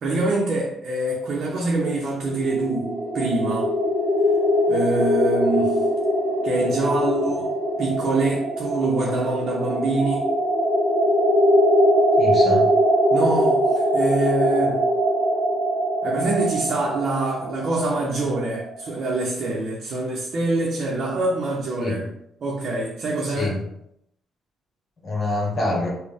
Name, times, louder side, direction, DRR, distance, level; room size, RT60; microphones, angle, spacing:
voice 1, 0.0-3.7 4.7-5.8 6.4-7.5 7.8-10.3 13.1-14.9 16.0-22.0 22.4-23.5, right 2 dB, 55° right, -3 dB, 0.7 m, -25 dB
sound 1, 2.0-18.8, equal, 30° right, 1.2 m, -22 dB
voice 2, 12.2-12.7 21.8-22.1 23.3-23.7 25.0-25.9, left 2 dB, 45° left, -2 dB, 1.2 m, -26 dB
4.1 x 2.2 x 3.4 m, 0.76 s
cardioid pair, 90°, 0 cm